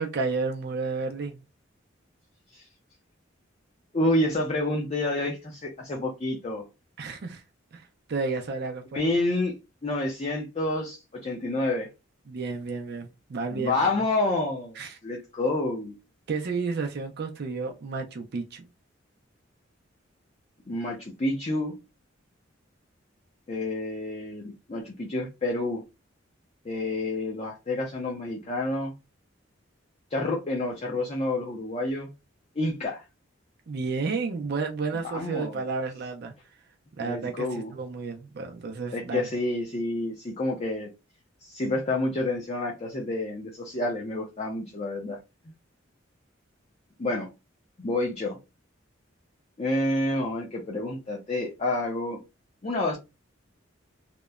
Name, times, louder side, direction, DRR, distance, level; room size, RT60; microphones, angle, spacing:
voice 1, 0.0-1.4 7.0-7.4 7.7-9.0 12.3-13.9 14.8-15.0 16.3-18.6 33.7-36.3 37.0-39.2, right 4 dB, 55° right, 0.4 m, -31 dB
voice 2, 3.9-6.7 8.9-9.5 9.8-11.9 13.5-15.9 20.7-21.7 23.5-25.8 26.6-28.9 30.1-32.1 32.6-33.0 35.1-35.6 37.0-37.7 38.9-40.9 41.4-45.2 47.0-47.3 47.8-48.4 49.6-52.2 52.6-53.0, left 2 dB, 35° left, 0.5 m, -29 dB
2.8 x 2.1 x 2.3 m
head